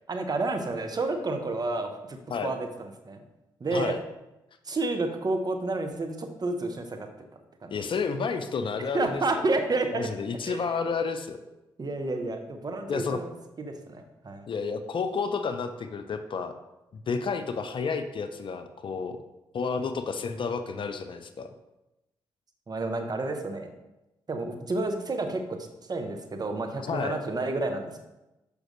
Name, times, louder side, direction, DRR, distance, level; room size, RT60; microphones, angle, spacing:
voice 1, 0.1-3.2 3.6-4.0 4.6-7.1 7.6-7.7 8.9-10.1 10.4-10.6 11.8-14.5 22.7-23.7 24.3-25.6 25.9-28.0, right 2 dB, 35° right, 5 dB, 1.0 m, -30 dB
voice 2, 7.7-9.4 9.9-11.4 12.9-13.2 14.5-16.5 16.9-19.2 19.5-21.5 26.8-27.2, left 5 dB, 50° left, 9 dB, 0.6 m, -31 dB
6.3 x 5.1 x 3.2 m, 0.96 s
hypercardioid pair, 40°, 11 cm